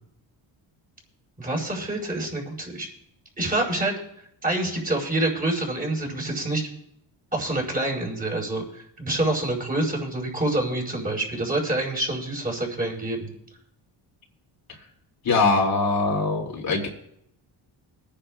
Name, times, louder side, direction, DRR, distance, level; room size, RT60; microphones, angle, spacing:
voice 1, 1.4-2.9 3.4-3.9 4.4-6.7 7.3-13.3, right 2 dB, 20° right, -2 dB, 4.8 m, -27 dB
voice 2, 15.2-16.9, left 3 dB, 50° left, -1 dB, 2.9 m, -22 dB
24.0 x 10.0 x 2.5 m, 0.73 s
cardioid pair, 100°, 44 cm